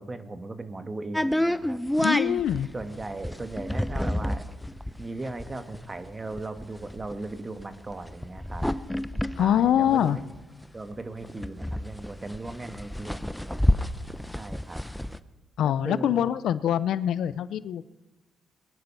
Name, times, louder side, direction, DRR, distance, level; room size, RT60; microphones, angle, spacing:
voice 1, 0.0-1.8 2.7-4.5 5.0-8.6 9.4-10.2 10.7-13.6 14.4-14.8 15.6-16.3, right 2 dB, 25° right, 9 dB, 1.4 m, -37 dB
sound 1, 1.1-10.6 11.0-11.1 11.2-15.2, left 1 dB, 5° left, 0.7 m, -29 dB
voice 2, 2.0-2.7 9.4-10.2 15.6-17.8, left 10 dB, 75° left, 17 dB, 0.5 m, -24 dB
21.0 x 10.5 x 5.5 m, 1.2 s
cardioid pair, 90°, 0 cm